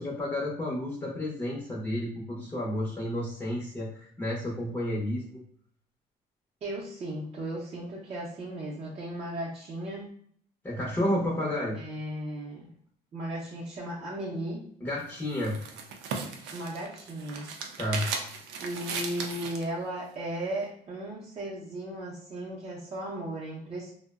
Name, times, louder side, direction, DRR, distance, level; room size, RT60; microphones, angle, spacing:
voice 1, 0.0-5.4 10.6-11.8 14.8-15.5 17.8-18.0, left 1 dB, 15° left, -5 dB, 0.6 m, -31 dB
voice 2, 6.6-10.1 11.8-12.7 13.1-14.7 16.5-17.5 18.6-23.9, right 1 dB, 35° right, -6 dB, 0.6 m, -36 dB
sound 1, 14.9-19.7, right 5 dB, 85° right, 0.4 m, -37 dB
2.6 x 2.0 x 2.3 m, 0.62 s
cardioid pair, 110°, 17 cm